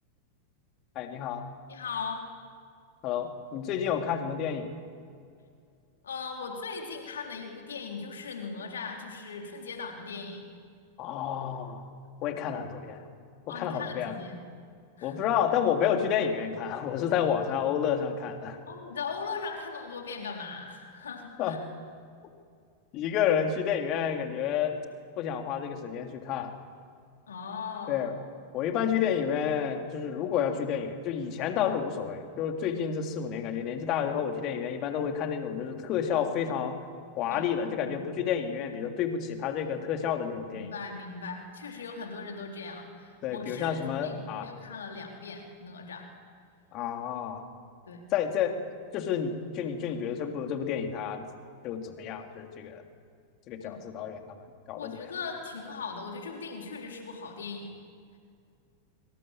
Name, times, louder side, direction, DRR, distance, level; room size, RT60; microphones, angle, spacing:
voice 1, 0.9-1.5 3.0-4.7 11.0-11.9 12.2-13.0 13.5-14.2 15.0-18.6 21.4-21.6 22.9-24.8 25.2-26.6 27.9-28.1 28.5-36.8 37.2-40.7 43.2-44.5 46.7-47.4 48.1-48.5 48.9-51.3 51.6-52.8 53.5-54.4 54.7-55.1, left 8 dB, 40° left, 4 dB, 3.2 m, -30 dB
voice 2, 1.7-2.2 6.0-10.5 13.5-14.4 15.0-15.2 18.7-21.6 27.3-28.0 32.7-32.8 37.3-38.0 40.4-46.1 47.9-48.0 53.6-53.7 54.8-57.8, left 5 dB, 65° left, 2 dB, 3.7 m, -39 dB
26.0 x 25.0 x 7.6 m, 2.3 s
figure-of-eight pair, 90°, 0 cm